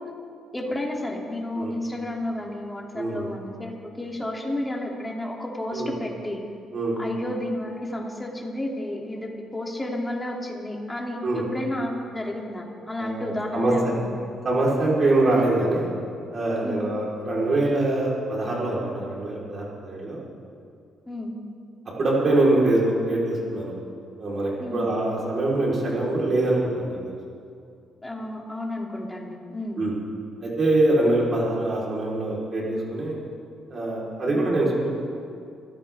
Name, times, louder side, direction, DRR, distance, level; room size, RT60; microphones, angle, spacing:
voice 1, 0.5-6.4 7.0-14.4 16.6-16.9 21.1-21.3 24.6-24.9 28.0-29.8 34.3-34.5, left 1 dB, 15° left, -1 dB, 3.0 m, -31 dB
voice 2, 2.9-3.3 5.7-5.9 6.7-7.0 11.2-11.4 13.0-13.9 14.4-15.9 16.3-20.2 22.0-23.7 24.2-27.2 29.8-29.9 30.4-33.2 33.7-34.9, right 2 dB, 45° right, -5 dB, 4.4 m, -24 dB
24.0 x 15.0 x 3.7 m, 2.4 s
cardioid pair, 90°, 0 cm